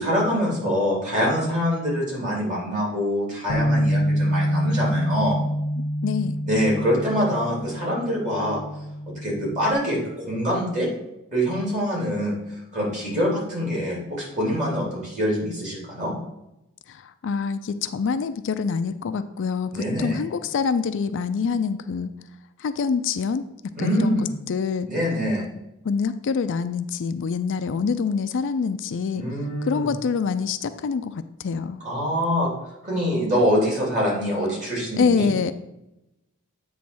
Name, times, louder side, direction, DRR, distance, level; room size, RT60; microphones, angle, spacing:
voice 1, 0.0-5.4 6.5-8.6 9.1-10.9 11.3-12.3 12.7-16.1 19.7-20.2 23.7-24.3 24.9-25.4 29.1-29.9 31.8-32.5 32.8-35.3, equal, 35° right, -4 dB, 3.0 m, -24 dB
Bass guitar, 3.5-9.7, equal, 85° left, 0.8 m, -26 dB
voice 2, 6.0-6.4 16.9-22.1 22.6-24.9 25.8-29.2 29.6-31.8 35.0-35.5, left 5 dB, 60° left, 11 dB, 0.4 m, -26 dB
8.4 x 3.2 x 6.1 m, 0.89 s
head